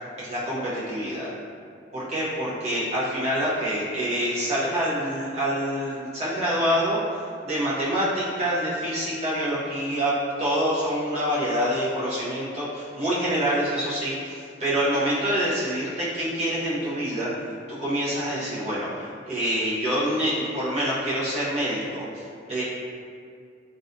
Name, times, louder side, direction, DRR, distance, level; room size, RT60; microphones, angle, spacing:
voice 1, 0.2-1.3 1.9-7.0 7.4-10.1 10.4-17.3 17.8-22.6, equal, 35° right, -9 dB, 0.6 m, -26 dB
2.4 x 2.2 x 2.5 m, 2.3 s
head